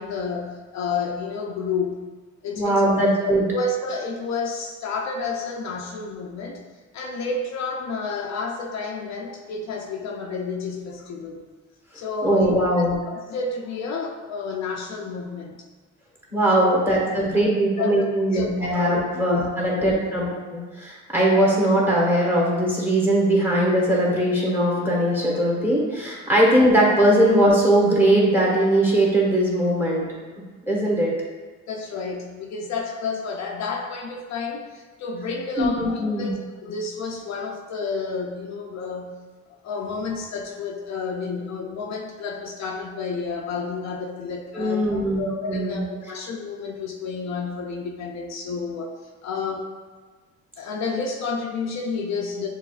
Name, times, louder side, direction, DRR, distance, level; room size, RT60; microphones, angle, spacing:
voice 1, 0.0-2.1 2.4-2.9 3.2-6.6 6.9-11.4 11.9-12.6 13.1-15.6 16.5-16.8 17.8-19.0 19.3-19.5 19.7-19.9 26.8-26.9 31.7-39.2 39.5-48.9 49.2-49.7 50.6-52.5, left 4 dB, 65° left, 1 dB, 0.5 m, -30 dB
voice 2, 2.5-3.4 12.2-13.0 16.3-30.0 30.7-31.1 35.6-36.3 44.5-45.2 45.5-45.8, right 1 dB, 5° right, -4 dB, 1.3 m, -20 dB
6.5 x 2.5 x 2.4 m, 1.4 s
cardioid pair, 90°, 30 cm